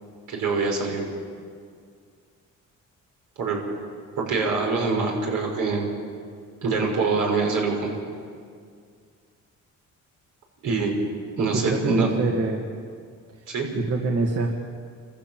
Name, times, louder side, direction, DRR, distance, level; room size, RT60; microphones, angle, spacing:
voice 1, 0.3-1.0 3.4-3.6 4.2-5.9 6.6-7.9 10.6-10.9 11.4-12.1 13.5-13.7, right 4 dB, 85° right, 0 dB, 6.1 m, -24 dB
voice 2, 11.5-12.7 13.7-14.6, right 3 dB, 55° right, 1 dB, 2.2 m, -25 dB
27.5 x 15.5 x 7.6 m, 2.1 s
cardioid pair, 90°, 30 cm